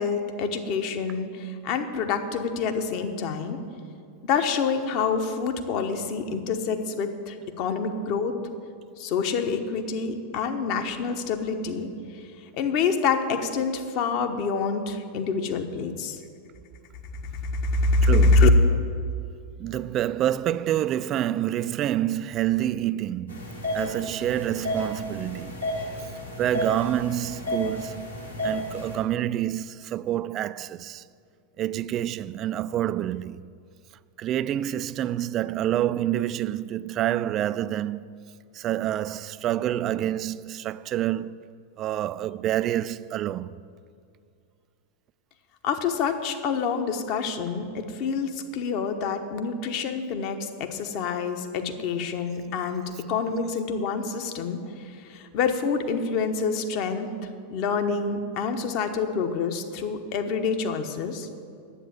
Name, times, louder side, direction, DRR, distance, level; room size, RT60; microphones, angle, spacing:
voice 1, 0.0-3.6 4.2-8.4 9.0-11.9 12.5-16.2 17.4-18.5 45.6-57.1 57.5-61.3, left 4 dB, 45° left, 1.0 m, -26 dB
voice 2, 18.0-18.5 19.6-25.6 26.4-28.2 28.4-31.0 31.6-33.4 34.2-38.1 38.5-41.5 41.8-43.5, right 12 dB, 35° right, 0.3 m, -27 dB
sound 1, 23.3-29.0, left 1 dB, 80° left, 2.1 m, -32 dB
9.8 x 8.4 x 7.3 m
figure-of-eight pair, 90°, 0 cm